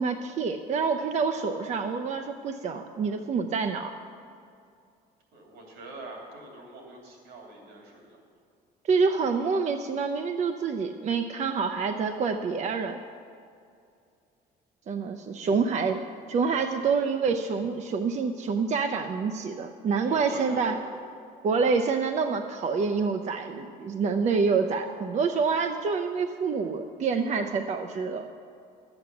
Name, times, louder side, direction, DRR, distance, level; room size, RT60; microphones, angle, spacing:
voice 1, 0.0-3.9 8.8-13.0 14.9-16.0 16.3-20.8 21.4-28.3, right 5 dB, 45° right, 6 dB, 0.6 m, -27 dB
voice 2, 5.3-8.2 15.3-15.6 16.8-17.0 20.0-20.7, right 2 dB, 85° right, 0 dB, 3.1 m, -44 dB
11.5 x 7.9 x 7.0 m, 2.4 s
cardioid pair, 110°, 17 cm